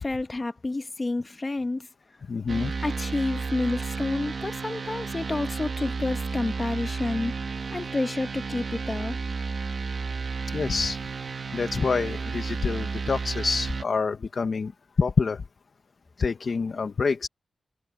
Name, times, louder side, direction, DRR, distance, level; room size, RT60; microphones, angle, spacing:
voice 1, 0.0-1.9 2.8-7.3 7.7-9.2, left 2 dB, 30° left, 1.3 m, -29 dB
voice 2, 2.3-2.7 10.5-11.0 11.5-14.7 15.0-15.4 16.2-17.3, left 4 dB, 55° left, 1.3 m, -26 dB
sound 1, 2.5-13.8, right 4 dB, 55° right, 2.2 m, -32 dB
wide cardioid pair, 115°, 0 cm